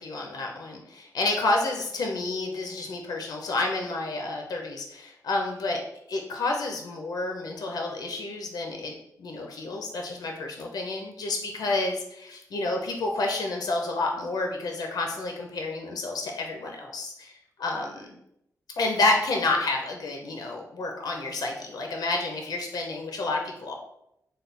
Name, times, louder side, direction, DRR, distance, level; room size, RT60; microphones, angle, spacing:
voice 1, 0.0-5.8 6.1-18.2 18.8-23.7, left 2 dB, 80° left, 2 dB, 0.6 m, -29 dB
3.2 x 2.2 x 4.1 m, 0.79 s
wide cardioid pair, 115°, 7 cm